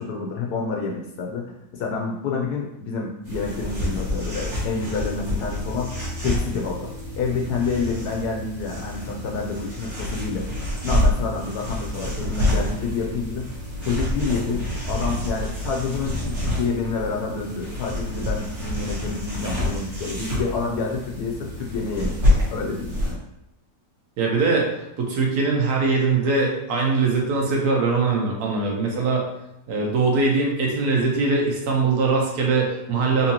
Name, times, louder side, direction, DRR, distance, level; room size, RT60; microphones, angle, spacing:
voice 1, 0.0-10.5 10.8-23.2, left 4 dB, 75° left, 0 dB, 1.0 m, -28 dB
sound 1, 3.2-23.1, left 1 dB, 45° right, 1.3 m, -27 dB
voice 2, 24.2-29.3 29.7-33.3, right 4 dB, 65° right, -1 dB, 1.3 m, -22 dB
4.2 x 2.7 x 2.8 m, 0.84 s
omnidirectional pair, 1.8 m